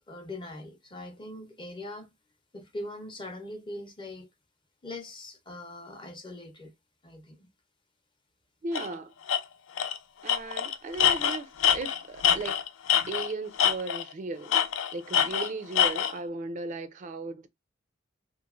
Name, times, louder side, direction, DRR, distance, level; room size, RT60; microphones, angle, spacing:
voice 1, 0.1-2.1 2.5-4.3 4.8-6.7 7.0-7.5, left 1 dB, 25° left, 0.6 m, -41 dB
voice 2, 8.6-9.1 10.2-12.6 13.1-14.6 14.9-17.5, right 3 dB, 40° right, 0.3 m, -36 dB
Tools, 8.7-8.9 9.3-9.4 9.8-10.0 10.3-13.3 13.6-14.1 14.5-16.1, left 9 dB, 90° left, 0.4 m, -25 dB
3.0 x 2.4 x 2.3 m
head